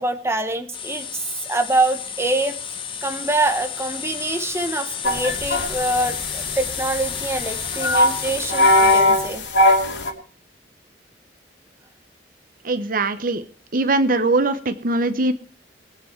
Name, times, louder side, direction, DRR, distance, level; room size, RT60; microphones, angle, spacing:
voice 1, 0.0-2.5 3.0-9.4, right 2 dB, 15° right, 6 dB, 1.1 m, -25 dB
sound 1, 0.7-9.0, left 7 dB, 30° left, 1.1 m, -31 dB
sound 2, 5.0-10.1, left 1 dB, 80° left, 2.7 m, -20 dB
voice 2, 12.6-13.4 13.7-15.3, right 2 dB, 50° right, 11 dB, 0.9 m, -21 dB
21.0 x 8.1 x 4.5 m, 0.43 s
head